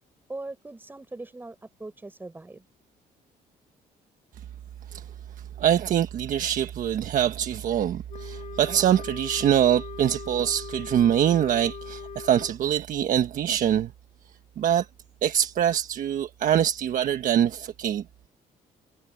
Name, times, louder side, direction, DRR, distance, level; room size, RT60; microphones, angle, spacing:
voice 1, 0.3-2.6, right 2 dB, 15° right, 5.6 m, -40 dB
voice 2, 5.6-13.9 14.6-14.9 15.2-18.0, right 10 dB, 60° right, 1.3 m, -24 dB
Wind instrument woodwind instrument, 8.1-12.6, left 8 dB, 50° left, 3.9 m, -41 dB
cardioid pair, 125°, 15 cm